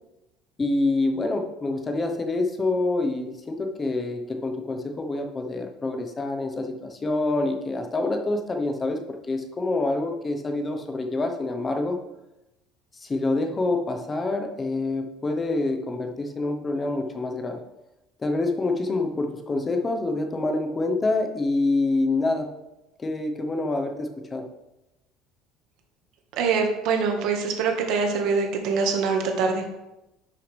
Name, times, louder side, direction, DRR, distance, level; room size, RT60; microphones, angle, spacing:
voice 1, 0.6-9.0 9.3-12.0 12.9-17.6 18.2-22.5 23.0-24.5, left 2 dB, 20° left, 4 dB, 0.9 m, -26 dB
voice 2, 26.4-29.7, right 5 dB, 60° right, 3 dB, 1.5 m, -24 dB
10.5 x 6.4 x 3.4 m, 0.96 s
cardioid pair, 155°, 0 cm